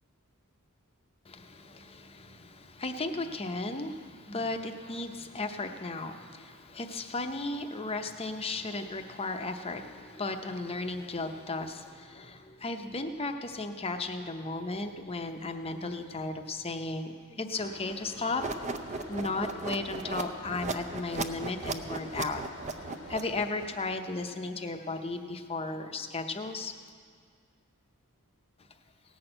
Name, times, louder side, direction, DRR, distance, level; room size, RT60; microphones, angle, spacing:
voice 1, 1.3-18.4 19.1-22.4 23.1-26.7, left 3 dB, 25° left, 6 dB, 0.7 m, -35 dB
sound 1, 17.5-24.0, left 3 dB, 70° left, 0.9 m, -50 dB
sound 2, 18.4-23.6, right 3 dB, 30° right, 0.5 m, -37 dB
17.5 x 6.2 x 7.7 m, 2.1 s
head